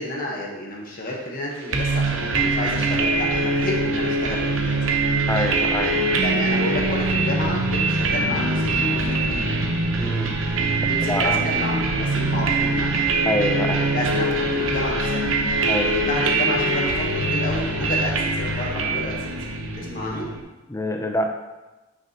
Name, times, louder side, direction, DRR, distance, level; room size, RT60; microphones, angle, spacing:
voice 1, 0.0-4.9 6.2-9.6 10.8-13.0 13.9-15.3 15.8-19.4 19.8-20.3, left 1 dB, 40° left, -2 dB, 1.2 m, -30 dB
sound 1, 1.7-20.4, right 2 dB, 60° right, 0.9 m, -23 dB
voice 2, 5.3-6.0 10.0-10.4 11.1-11.4 13.2-13.9 15.6-15.9 20.0-20.1 20.7-21.3, left 1 dB, 15° left, 4 dB, 0.5 m, -26 dB
8.8 x 6.3 x 2.9 m, 1.1 s
head